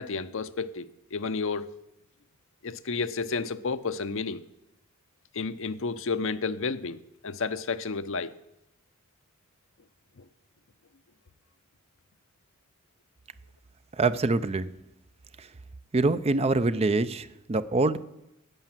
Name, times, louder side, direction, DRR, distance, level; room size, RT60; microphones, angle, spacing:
voice 1, 0.0-1.7 2.6-4.4 5.3-8.3, left 4 dB, 65° left, 0.7 m, -31 dB
voice 2, 14.0-14.7 15.4-15.5 15.9-18.0, right 3 dB, 30° right, 0.5 m, -25 dB
13.5 x 8.7 x 7.4 m
head